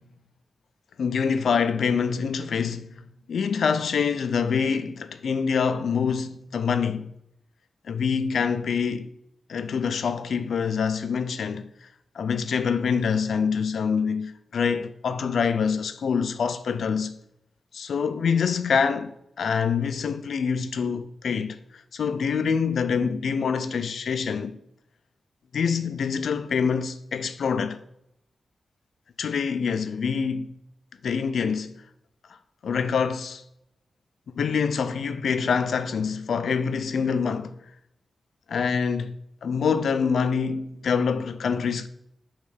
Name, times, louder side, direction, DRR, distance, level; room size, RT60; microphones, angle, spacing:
voice 1, 1.0-3.0 3.3-7.1 7.9-9.1 9.5-11.9 12.1-17.2 17.7-24.6 25.5-27.8 29.2-30.5 31.0-31.7 32.3-32.4 32.6-33.4 34.3-37.5 38.5-41.9, left 6 dB, 80° left, 0.4 m, -25 dB
6.5 x 3.1 x 5.1 m
wide cardioid pair, 170°, 0 cm